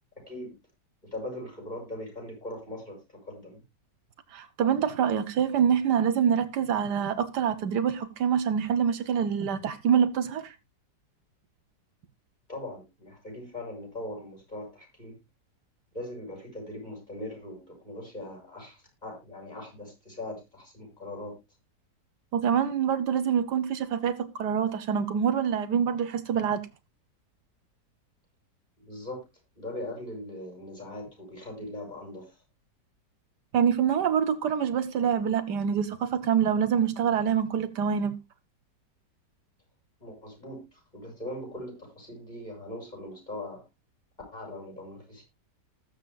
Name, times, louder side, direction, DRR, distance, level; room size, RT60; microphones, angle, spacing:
voice 1, 1.1-3.6 12.5-15.1 15.9-21.4 28.8-29.2 29.6-32.3 40.0-43.6 44.3-45.2, left 1 dB, 25° left, 6.5 m, -40 dB
voice 2, 4.3-10.5 22.3-26.6 33.5-38.1, right 8 dB, 75° right, 1.4 m, -25 dB
20.5 x 6.8 x 2.3 m
omnidirectional pair, 1.9 m